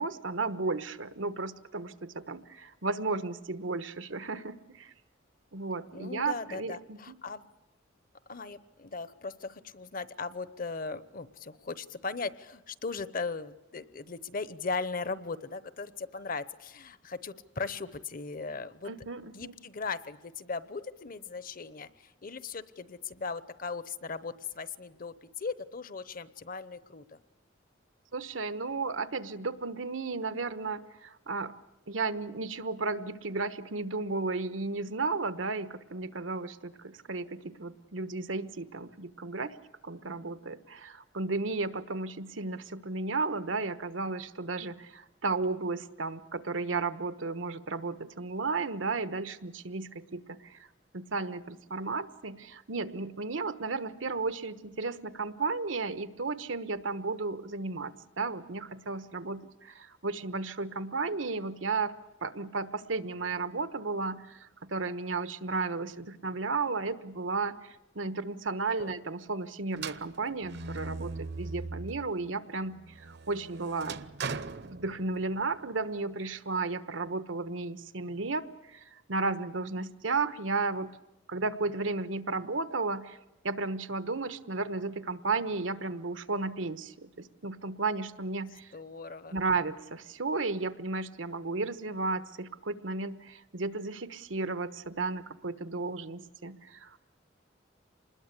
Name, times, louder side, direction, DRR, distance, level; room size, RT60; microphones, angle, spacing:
voice 1, 0.0-4.9 5.5-7.1 18.8-19.5 28.1-31.5 31.9-39.5 39.8-50.7 50.9-61.9 62.2-74.0 74.6-80.9 81.3-83.2 83.4-88.7 89.3-97.0, right 3 dB, 90° right, 12 dB, 1.2 m, -34 dB
voice 2, 5.9-7.5 8.3-18.9 19.3-27.2 68.7-68.9 88.7-89.3, left 4 dB, 45° left, 16 dB, 1.0 m, -38 dB
sound 1, 69.7-72.2 72.6-75.4, right 4 dB, 60° right, 0.8 m, -40 dB
26.0 x 20.5 x 8.3 m, 0.97 s
head